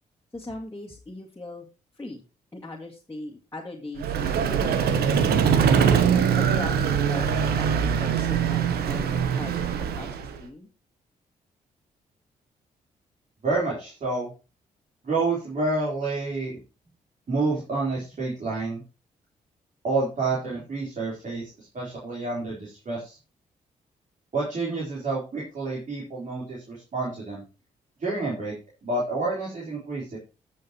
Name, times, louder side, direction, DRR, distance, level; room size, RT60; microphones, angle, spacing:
voice 1, 0.3-1.7 1.9-2.2 2.5-4.1 4.5-5.9 6.3-10.7, left 2 dB, 15° left, -4 dB, 2.3 m, -40 dB
Vehicle, 4.0-10.4, right 7 dB, 80° right, 1.0 m, -22 dB
voice 2, 13.4-14.3 15.0-16.5 17.3-18.8 19.8-23.2 24.3-27.4 28.0-28.5 28.8-30.2, right 3 dB, 50° right, -6 dB, 3.9 m, -29 dB
15.0 x 6.5 x 3.0 m, 0.31 s
supercardioid pair, 55°, 16 cm